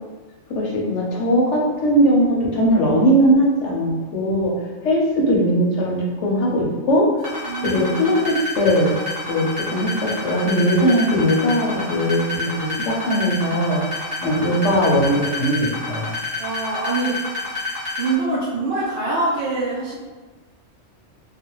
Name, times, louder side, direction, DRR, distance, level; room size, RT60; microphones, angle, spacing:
voice 1, 0.6-4.5 4.8-7.0 7.6-8.9 9.3-15.6 15.9-16.1, equal, 80° left, -3 dB, 1.0 m, -19 dB
sound 1, 7.2-18.1, left 3 dB, 15° right, 0.8 m, -29 dB
voice 2, 7.5-7.9 12.3-12.4 16.4-17.2 17.5-17.6 18.0-20.0, right 3 dB, 60° right, -7 dB, 0.6 m, -24 dB
2.4 x 2.2 x 2.9 m, 1.3 s
omnidirectional pair, 1.2 m